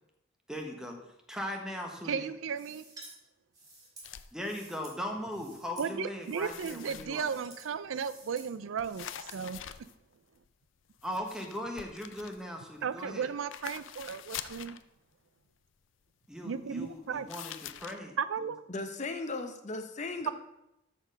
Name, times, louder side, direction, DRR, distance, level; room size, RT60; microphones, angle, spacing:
voice 1, 0.5-1.0 1.3-2.3 4.3-7.3 11.0-13.3 16.3-18.1, equal, 5° right, 2 dB, 1.1 m, -39 dB
voice 2, 2.0-2.8 5.8-9.6 12.8-14.8 16.4-17.3 18.2-18.6, right 6 dB, 80° right, 14 dB, 0.4 m, -35 dB
sound 1, 2.6-3.1 3.5-5.0 5.3-5.9 6.2-6.8 7.1-7.7 7.9-8.5 8.8-9.4, right 2 dB, 20° right, 2.6 m, -52 dB
sound 2, 4.0-4.3 5.0-5.2 5.6-6.0 6.4-7.5 8.8-10.5 10.9-13.1 13.5-14.8 17.3-18.0, left 10 dB, 70° left, 0.5 m, -45 dB
voice 3, 18.7-20.3, left 3 dB, 35° left, 7 dB, 0.7 m, -36 dB
13.0 x 4.5 x 5.2 m, 0.88 s
head